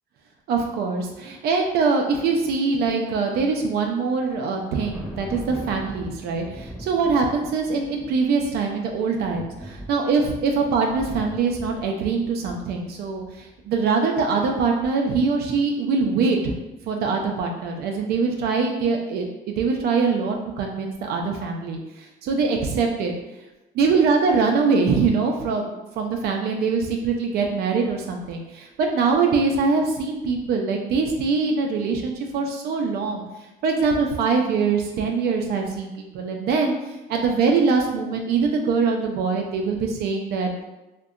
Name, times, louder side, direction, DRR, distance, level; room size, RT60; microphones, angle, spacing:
voice 1, 0.5-16.5 16.9-23.1 23.7-33.2 33.6-40.6, right 4 dB, 70° right, 2 dB, 0.4 m, -23 dB
Thunder, 4.2-13.6, equal, 5° left, 0.7 m, -40 dB
2.7 x 2.1 x 2.4 m, 1.0 s
cardioid pair, 110°, 17 cm